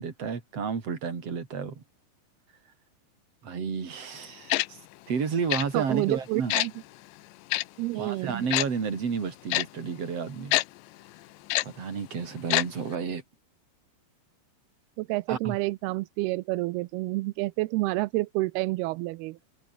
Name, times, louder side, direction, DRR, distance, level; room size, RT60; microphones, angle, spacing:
voice 1, 0.0-1.8 3.4-4.8 5.1-6.5 8.0-10.6 11.6-13.2 15.3-15.5, right 6 dB, 35° right, 4.1 m, -31 dB
Tick-tock, 4.5-4.7 5.5-5.7 6.5-6.7 7.5-7.6 8.5-8.7 9.5-9.7 10.5-10.7 11.5-11.7 12.5-12.7 12.9-13.0, left 20 dB, 80° left, 2.8 m, -24 dB
voice 2, 5.7-6.7 7.8-8.4 15.0-19.4, right 20 dB, 85° right, 2.2 m, -29 dB
omnidirectional pair, 5.3 m